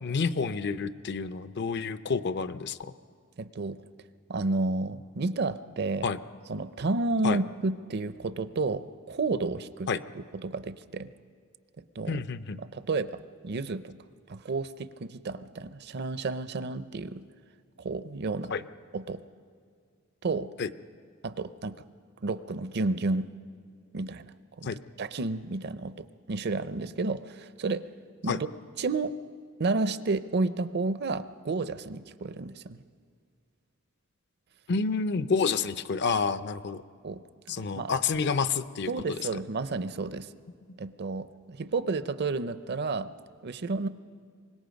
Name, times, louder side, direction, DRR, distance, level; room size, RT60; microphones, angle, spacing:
voice 1, 0.0-2.9 6.0-6.2 7.2-7.4 9.9-10.0 12.1-12.6 18.5-18.6 20.6-20.7 24.6-24.8 28.3-28.4 34.7-36.8 37.5-39.2, left 5 dB, 55° left, 13 dB, 0.6 m, -29 dB
voice 2, 3.4-3.8 4.3-6.1 6.5-9.9 10.1-11.1 12.0-12.2 12.6-13.1 13.4-13.9 14.3-17.2 17.8-18.5 18.9-19.2 20.2-20.5 21.2-21.8 22.2-23.3 23.9-24.3 24.6-24.7 25.0-27.8 28.2-28.5 28.8-29.1 29.6-32.8 37.0-37.2 37.5-37.9 38.9-40.3 40.8-43.1 43.4-43.9, right 3 dB, 55° right, 13 dB, 0.6 m, -31 dB
24.5 x 20.5 x 5.2 m, 2.1 s
head